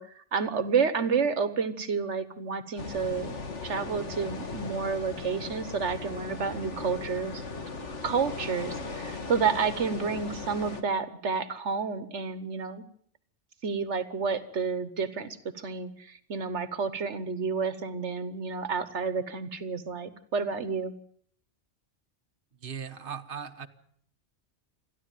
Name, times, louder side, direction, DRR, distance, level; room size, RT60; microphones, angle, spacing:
voice 1, 0.0-3.3 3.6-7.4 8.0-12.8 13.6-20.9, right 5 dB, 75° right, 13 dB, 1.5 m, -30 dB
sound 1, 2.8-10.8, left 3 dB, 80° left, 2.2 m, -38 dB
voice 2, 22.6-23.7, right 7 dB, 50° right, 6 dB, 1.4 m, -38 dB
28.0 x 11.5 x 9.2 m, 0.63 s
omnidirectional pair, 1.2 m